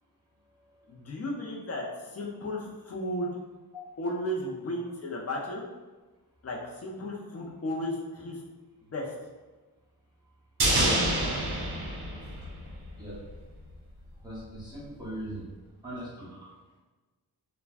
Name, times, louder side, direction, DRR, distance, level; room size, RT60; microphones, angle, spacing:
voice 1, 0.9-1.8 2.1-3.3 4.0-5.6 6.4-8.4 8.9-9.1, left 1 dB, 40° left, -1 dB, 0.5 m, -34 dB
sound 1, 10.6-13.0 13.3-13.4, right 1 dB, 70° right, 0.7 m, -27 dB
voice 2, 14.2-15.5 15.8-16.5, right 1 dB, 10° right, -10 dB, 0.9 m, -40 dB
3.3 x 2.1 x 2.4 m, 1.2 s
wide cardioid pair, 160°, 39 cm